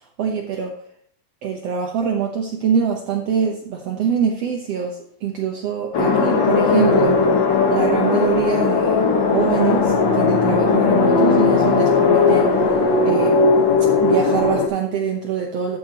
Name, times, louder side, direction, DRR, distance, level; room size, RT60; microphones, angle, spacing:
voice 1, 0.2-0.8 1.4-7.2 7.7-9.1 9.3-13.5 14.0-15.8, right 7 dB, 75° right, 1 dB, 1.4 m, -24 dB
sound 1, 5.9-14.7, left 4 dB, 85° left, 1.0 m, -17 dB
13.5 x 7.3 x 3.0 m, 0.64 s
omnidirectional pair, 4.3 m